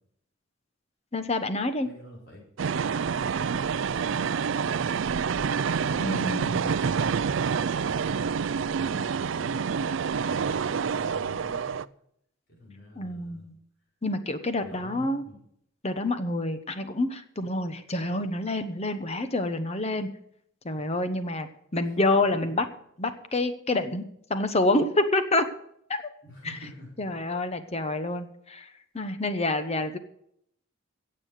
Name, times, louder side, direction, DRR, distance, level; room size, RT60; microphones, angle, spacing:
voice 1, 1.1-1.9 6.0-6.7 13.0-13.6 14.0-15.2 15.8-20.1 20.6-22.7 23.0-24.0 24.3-25.5 25.9-26.0 27.0-28.7 28.9-30.0, left 2 dB, 30° left, 9 dB, 1.0 m, -27 dB
voice 2, 1.8-2.4 3.2-5.1 5.7-7.3 7.9-9.5 10.2-11.8 12.5-13.5 14.6-15.4 26.2-27.1, left 1 dB, 55° left, -4 dB, 5.1 m, -47 dB
sound 1, 2.6-11.8, right 6 dB, 65° right, 0.4 m, -27 dB
16.0 x 7.7 x 6.5 m, 0.70 s
head